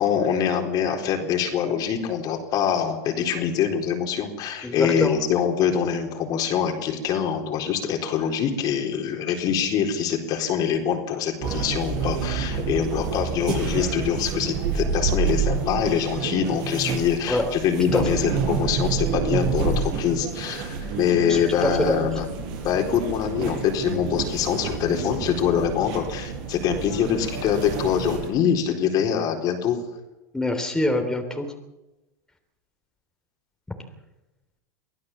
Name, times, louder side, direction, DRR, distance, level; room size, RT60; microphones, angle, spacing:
voice 1, 0.0-22.3 22.6-29.8, left 8 dB, 45° left, 3 dB, 4.2 m, -24 dB
voice 2, 4.6-5.2 17.3-17.5 17.9-18.0 21.3-21.9 30.3-31.5, left 1 dB, 5° left, 3 dB, 3.4 m, -24 dB
sound 1, 11.4-28.3, right 6 dB, 55° right, 7.4 m, -28 dB
24.0 x 16.0 x 7.4 m, 1.0 s
hypercardioid pair, 100°, 9 cm